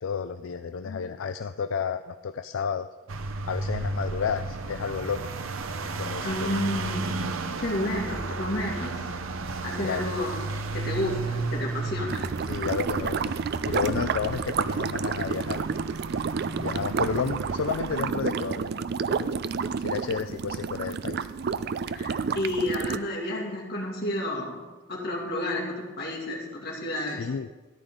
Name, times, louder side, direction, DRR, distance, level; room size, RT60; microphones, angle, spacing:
voice 1, 0.0-2.9 3.5-5.3 6.0-6.5 9.8-10.1 12.4-13.3 13.7-15.6 16.6-18.8 19.1-19.4 19.8-21.3 27.1-27.5, left 6 dB, 75° left, 9 dB, 0.4 m, -31 dB
sound 1, 3.1-18.0, right 3 dB, 85° right, 0.8 m, -34 dB
voice 2, 6.2-7.3 7.6-9.0 9.6-10.4 10.7-12.3 21.9-24.6 24.9-27.3, left 1 dB, 50° left, -2 dB, 2.5 m, -31 dB
sound 2, 12.1-23.0, right 6 dB, 50° right, 0.4 m, -30 dB
14.0 x 10.5 x 3.8 m, 1.2 s
head